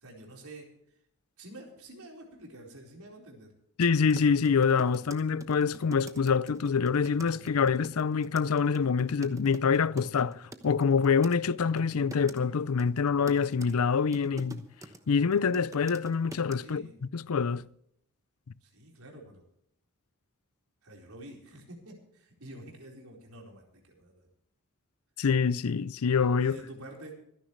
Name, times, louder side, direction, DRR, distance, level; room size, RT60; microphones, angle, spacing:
voice 1, 0.0-0.7 1.4-3.5 16.6-16.9 18.6-19.4 20.8-24.3 26.4-27.1, right 1 dB, 85° right, 4.4 m, -48 dB
voice 2, 3.8-14.6 15.1-16.9 17.1-17.7 25.2-26.6, left 5 dB, 85° left, 0.5 m, -26 dB
sound 1, 4.0-11.4 11.8-12.4 12.8-15.0 15.3-16.5, right 1 dB, 15° right, 1.0 m, -46 dB
25.5 x 10.5 x 3.2 m
head